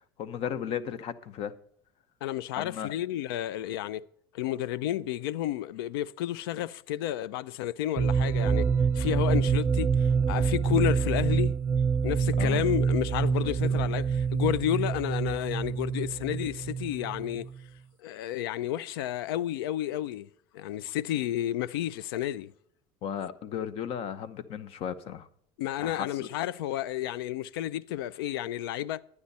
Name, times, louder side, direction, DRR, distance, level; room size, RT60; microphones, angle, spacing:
voice 1, 0.2-1.5 2.6-2.9 12.4-12.6 13.6-13.9 23.0-25.3 25.8-26.3, left 8 dB, 55° left, 1.0 m, -35 dB
voice 2, 2.2-4.0 4.3-8.7 8.9-11.5 12.0-17.5 18.0-20.3 20.5-22.5 25.6-29.0, left 12 dB, 85° left, 0.4 m, -31 dB
sound 1, 8.0-17.6, right 6 dB, 20° right, 0.5 m, -26 dB
11.5 x 9.7 x 4.2 m
supercardioid pair, 100°, 12 cm